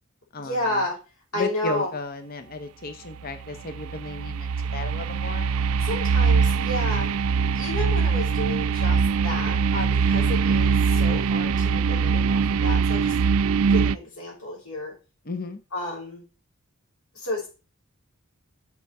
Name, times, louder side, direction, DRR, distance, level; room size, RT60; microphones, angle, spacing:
voice 1, 0.4-1.0 1.3-1.9 5.8-7.1 7.5-13.2 13.6-14.9 15.7-16.2 17.1-17.5, left 1 dB, 70° left, -3 dB, 5.8 m, -31 dB
voice 2, 1.4-5.8 15.3-15.6, left 3 dB, 40° left, 9 dB, 0.8 m, -34 dB
sound 1, 3.3-14.0, right 5 dB, 70° right, 0.4 m, -22 dB
7.0 x 6.9 x 4.8 m, 0.32 s
head